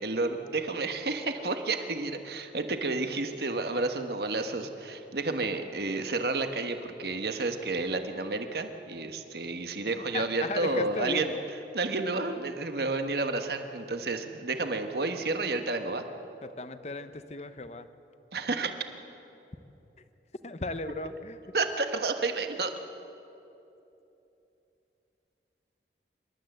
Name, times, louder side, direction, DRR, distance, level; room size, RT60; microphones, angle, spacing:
voice 1, 0.0-11.3 11.7-16.0 18.3-18.7 21.5-22.7, right 3 dB, 65° right, 7 dB, 1.3 m, -31 dB
voice 2, 10.1-11.4 16.4-17.9 20.4-21.4, left 3 dB, 40° left, 11 dB, 0.8 m, -36 dB
26.5 x 12.5 x 7.9 m, 2.9 s
head